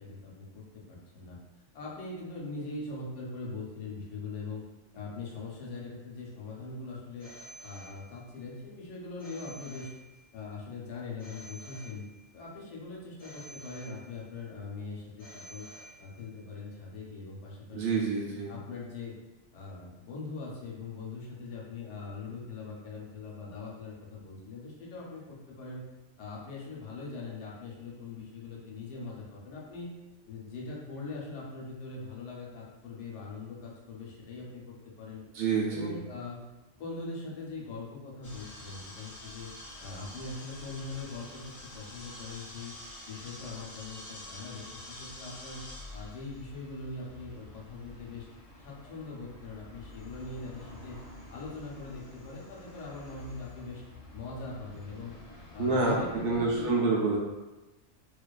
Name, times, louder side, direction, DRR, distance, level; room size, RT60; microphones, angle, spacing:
voice 1, 0.0-1.4 1.7-4.6 4.9-7.3 7.6-9.9 10.3-12.0 12.3-15.7 16.0-18.0 18.5-19.2 19.5-25.8 26.2-29.9 30.3-35.2 35.7-36.4 36.8-39.5 39.8-42.7 43.0-45.6 45.9-48.3 48.6-51.0 51.3-53.8 54.1-55.1 55.5-56.8, left 3 dB, 75° left, -4 dB, 0.9 m, -41 dB
Telephone, 7.2-8.4 9.2-10.4 11.2-12.4 13.2-14.4 15.2-16.4, right 1 dB, 10° right, 1.0 m, -50 dB
voice 2, 17.7-18.5 35.3-36.0 55.6-57.2, right 3 dB, 75° right, -3 dB, 0.9 m, -27 dB
sound 1, 38.2-56.6, left 1 dB, 55° left, 0.4 m, -48 dB
2.4 x 2.3 x 2.2 m, 1.1 s
omnidirectional pair, 1.2 m